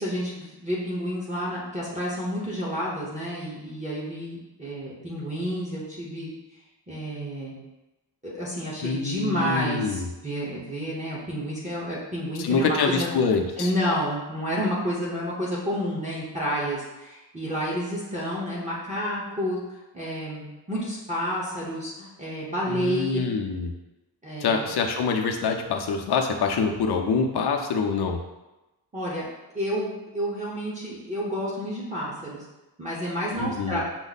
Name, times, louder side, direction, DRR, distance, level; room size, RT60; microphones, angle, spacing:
voice 1, 0.0-6.3 6.9-7.5 8.2-13.1 13.6-19.6 19.9-23.2 24.2-24.7 28.9-29.3 29.5-32.4 32.8-33.8, equal, 15° right, -7 dB, 0.9 m, -30 dB
voice 2, 8.8-10.1 12.4-13.7 22.7-23.7 24.4-28.2 33.4-33.8, left 5 dB, 65° left, 3 dB, 0.6 m, -25 dB
6.0 x 2.1 x 4.0 m, 1.0 s
wide cardioid pair, 165°, 42 cm